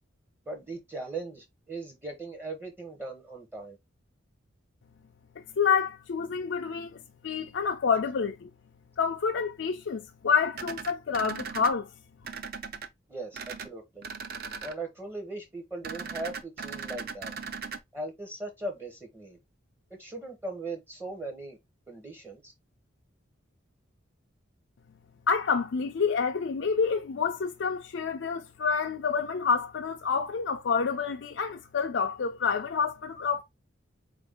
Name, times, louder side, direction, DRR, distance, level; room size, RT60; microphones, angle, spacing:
voice 1, 0.5-3.8 13.1-14.1 14.6-17.3 17.9-19.4 20.0-21.6 21.9-22.5, right 2 dB, 10° right, 0.7 m, -39 dB
voice 2, 5.6-7.0 7.2-8.5 9.0-11.9 25.3-33.4, left 5 dB, 60° left, 0.4 m, -28 dB
sound 1, 10.5-11.7 12.2-12.9 13.3-13.7 14.0-14.7 15.8-17.8, right 5 dB, 50° right, 0.5 m, -38 dB
4.1 x 2.6 x 3.4 m
head